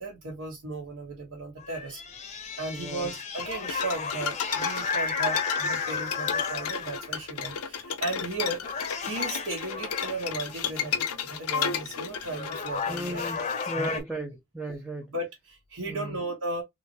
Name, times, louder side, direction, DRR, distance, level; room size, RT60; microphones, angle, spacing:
voice 1, 0.0-2.0 2.3-13.2 13.5-14.0 15.1-16.6, right 2 dB, 65° right, 1.2 m, -36 dB
sound 1, 1.6-7.2 8.0-8.3 8.6-10.4 11.8-11.9 12.3-14.0, left 5 dB, 30° left, 0.7 m, -33 dB
voice 2, 2.7-3.1 12.9-15.1 15.9-16.2, right 1 dB, 5° right, 0.5 m, -36 dB
sound 2, 3.4-13.9, left 7 dB, 80° left, 0.6 m, -33 dB
3.6 x 3.1 x 2.7 m
head